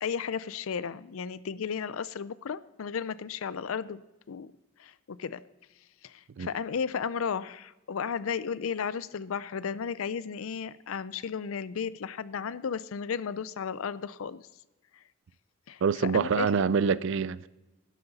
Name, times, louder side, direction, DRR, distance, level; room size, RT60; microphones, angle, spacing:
voice 1, 0.0-4.0 4.3-4.5 4.8-5.4 6.0-14.4 15.7-16.6, left 6 dB, 75° left, 0.4 m, -34 dB
voice 2, 15.8-17.5, right 6 dB, 60° right, 0.4 m, -26 dB
12.5 x 12.0 x 4.1 m
head